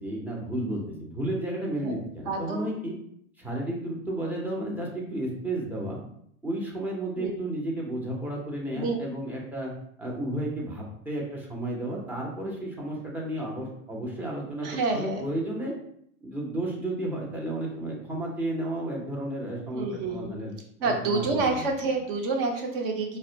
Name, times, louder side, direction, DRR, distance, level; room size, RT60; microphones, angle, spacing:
voice 1, 0.0-2.9 3.4-6.0 6.4-9.7 10.0-15.7 16.2-20.5 20.8-21.7, right 1 dB, 5° right, -2 dB, 0.6 m, -32 dB
voice 2, 1.8-2.7 7.2-7.3 8.8-9.0 14.6-15.3 19.7-20.4 20.8-23.2, right 3 dB, 40° right, 2 dB, 0.8 m, -28 dB
4.0 x 2.1 x 2.7 m, 0.69 s
figure-of-eight pair, 100°, 42 cm